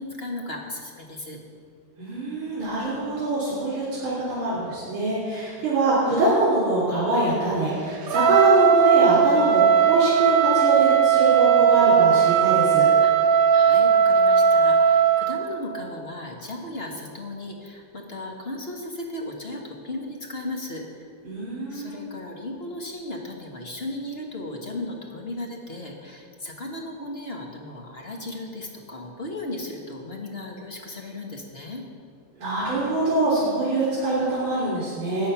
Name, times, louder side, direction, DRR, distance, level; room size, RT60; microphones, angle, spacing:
voice 1, 0.0-1.4 13.0-21.1 21.7-31.8, left 1 dB, 35° left, 0 dB, 1.5 m, -36 dB
voice 2, 2.0-12.9 21.3-22.0 32.4-35.3, right 2 dB, 80° right, -7 dB, 4.1 m, -24 dB
Trumpet, 8.1-15.4, right 7 dB, 60° right, 1.0 m, -18 dB
15.0 x 9.0 x 5.8 m, 2.2 s
omnidirectional pair, 2.2 m